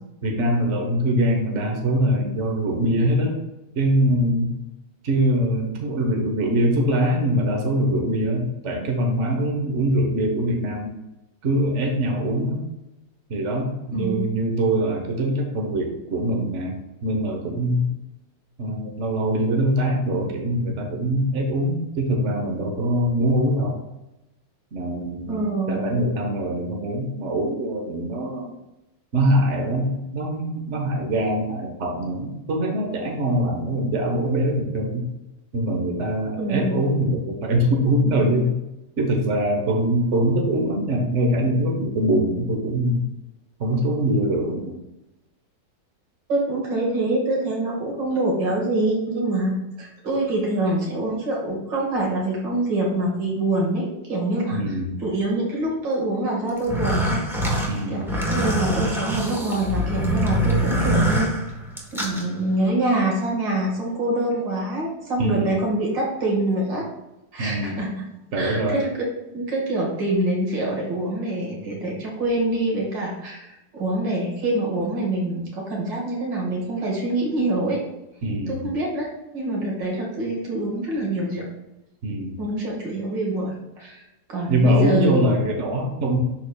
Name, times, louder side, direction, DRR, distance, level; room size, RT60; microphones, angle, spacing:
voice 1, 0.2-3.4 3.7-4.5 5.0-10.9 11.4-12.6 13.3-17.9 18.6-23.8 24.7-28.5 29.1-35.1 35.5-38.6 39.0-43.0 43.6-44.7 54.5-55.0 57.7-58.1 65.2-65.6 67.4-67.8 68.3-68.8 78.2-78.7 82.0-82.4 84.5-86.2, right 1 dB, 45° right, 1 dB, 1.2 m, -23 dB
voice 2, 13.9-14.3 25.3-25.9 36.4-36.9 46.3-57.2 57.9-61.3 61.9-66.9 67.3-68.1 68.4-68.9 69.3-77.8 78.5-79.1 79.3-81.5 82.4-84.0 84.3-85.2, right 1 dB, 80° right, -3 dB, 2.6 m, -25 dB
sound 1, 56.6-62.2, equal, ahead, 0.8 m, -24 dB
10.5 x 4.4 x 2.3 m, 0.94 s
omnidirectional pair, 2.0 m